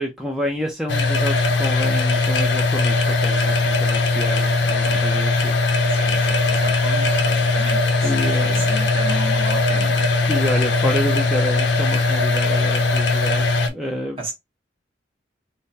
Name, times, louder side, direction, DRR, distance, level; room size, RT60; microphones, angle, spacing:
voice 1, 0.0-6.2 8.0-8.7 10.3-14.3, equal, ahead, 0.5 m, -28 dB
sound 1, 0.9-13.7, left 3 dB, 70° left, 0.7 m, -19 dB
voice 2, 4.8-5.3 5.9-10.1 14.2-14.3, right 2 dB, 30° right, 1.2 m, -32 dB
3.7 x 2.1 x 4.0 m
head